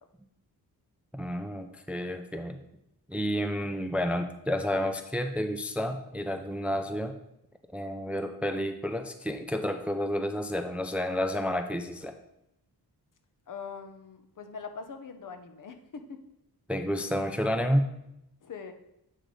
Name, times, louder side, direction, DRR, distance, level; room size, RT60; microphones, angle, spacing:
voice 1, 1.1-2.6 3.1-7.1 7.7-12.1 16.7-17.9, equal, 5° right, 7 dB, 0.4 m, -30 dB
voice 2, 8.0-8.3 13.5-16.2 18.4-18.7, left 5 dB, 50° left, 7 dB, 0.8 m, -43 dB
7.5 x 3.9 x 4.9 m, 0.82 s
cardioid pair, 95°, 39 cm